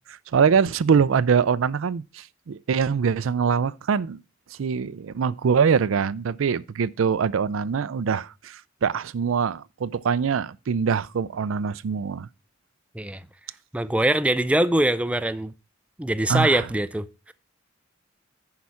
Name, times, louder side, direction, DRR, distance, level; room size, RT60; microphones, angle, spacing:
voice 1, 0.1-4.2 4.6-12.3 16.3-16.7, right 6 dB, 80° right, 0.4 m, -23 dB
voice 2, 13.7-15.5 16.0-17.3, right 1 dB, 5° right, 0.4 m, -23 dB
10.5 x 4.8 x 5.6 m
head